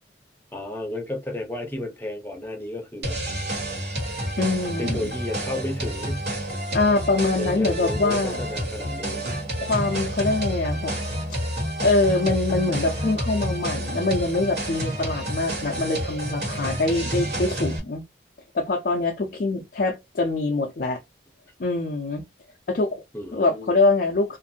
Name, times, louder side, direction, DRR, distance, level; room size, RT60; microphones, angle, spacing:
voice 1, 0.5-3.2 4.8-6.3 7.4-9.3 23.1-23.8, left 1 dB, 10° left, 0.7 m, -32 dB
sound 1, 3.0-17.8, right 1 dB, 60° right, 1.4 m, -29 dB
voice 2, 4.4-5.1 6.7-8.4 9.6-10.9 11.3-11.4 11.8-18.0 18.5-21.0 21.6-22.2 22.7-23.0 23.3-24.4, left 3 dB, 50° left, 0.4 m, -24 dB
2.5 x 2.5 x 2.6 m
head